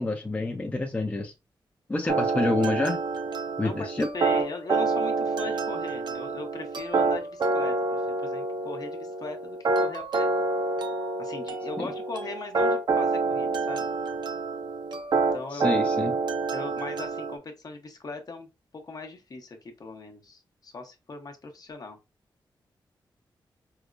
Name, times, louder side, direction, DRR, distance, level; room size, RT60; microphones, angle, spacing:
voice 1, 0.0-1.3 1.9-3.0 3.6-4.1 11.8-11.9 15.5-16.1, left 2 dB, 15° left, 0.5 m, -28 dB
sound 1, 2.1-17.4, right 3 dB, 60° right, 0.6 m, -27 dB
voice 2, 4.1-10.3 11.2-13.9 15.2-15.6 16.5-18.5 18.7-22.0, left 3 dB, 50° left, 0.8 m, -40 dB
4.7 x 2.0 x 2.4 m
wide cardioid pair, 120°, 9 cm